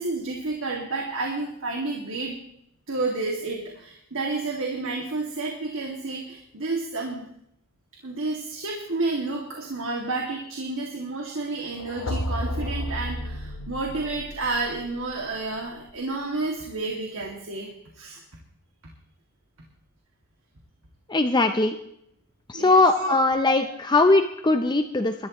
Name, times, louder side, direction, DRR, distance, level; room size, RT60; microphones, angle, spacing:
voice 1, 0.0-2.4 2.9-7.3 8.0-17.7 18.0-18.2 22.5-23.2, right 3 dB, 65° right, 0 dB, 2.3 m, -30 dB
sound 1, 11.7-15.7, equal, 65° left, 1.0 m, -33 dB
voice 2, 21.1-21.8 22.5-25.1, left 2 dB, 20° left, 7 dB, 0.7 m, -20 dB
21.0 x 13.0 x 3.1 m, 0.75 s
head